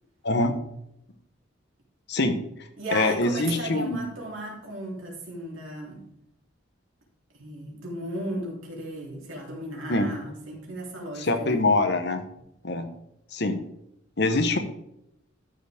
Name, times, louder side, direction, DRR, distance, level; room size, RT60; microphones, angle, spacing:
voice 1, 0.2-0.6 2.1-2.4 2.9-4.0 9.9-10.1 11.2-12.2 12.6-12.9 13.3-13.6 14.2-14.6, left 2 dB, 55° left, 8 dB, 1.1 m, -24 dB
voice 2, 2.8-6.0 7.3-11.6, right 1 dB, 85° right, -2 dB, 3.5 m, -35 dB
13.0 x 6.9 x 3.5 m, 0.79 s
head